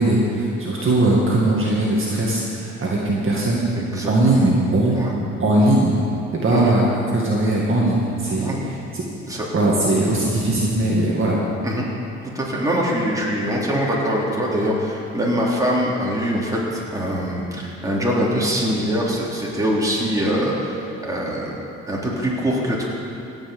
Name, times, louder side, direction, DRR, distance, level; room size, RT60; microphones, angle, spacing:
voice 1, 0.0-3.6 4.1-5.0 5.4-6.0 6.4-6.9 7.1-8.5 8.9-9.0 9.5-11.4, right 2 dB, 40° right, -4 dB, 2.2 m, -19 dB
voice 2, 3.7-4.5 4.9-5.2 6.5-6.7 8.4-8.6 9.3-9.5 11.6-11.8 12.3-21.5 21.9-22.9, equal, 10° right, -5 dB, 3.4 m, -23 dB
17.0 x 6.3 x 7.8 m, 2.7 s
cardioid pair, 90°, 30 cm